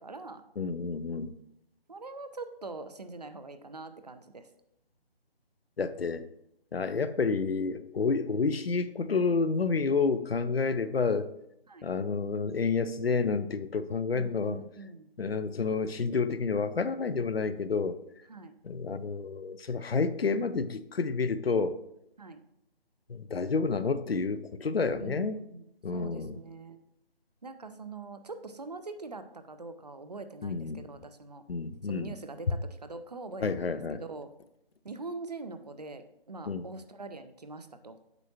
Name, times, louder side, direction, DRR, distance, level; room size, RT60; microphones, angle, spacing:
voice 1, 0.0-0.4 1.9-4.5 11.7-11.9 14.1-15.1 18.3-18.6 22.2-22.4 25.0-25.7 25.9-26.8 27.4-31.4 31.8-34.3 34.8-38.0, right 3 dB, 40° right, 9 dB, 0.5 m, -43 dB
voice 2, 0.6-1.4 5.8-6.2 6.7-11.3 11.8-14.6 15.2-18.0 18.6-21.8 23.1-25.4 25.8-26.3 30.4-30.8 31.5-32.1 33.4-34.0 36.5-36.6, left 4 dB, 75° left, 13 dB, 0.6 m, -29 dB
8.1 x 5.7 x 2.8 m, 0.79 s
figure-of-eight pair, 155°, 30 cm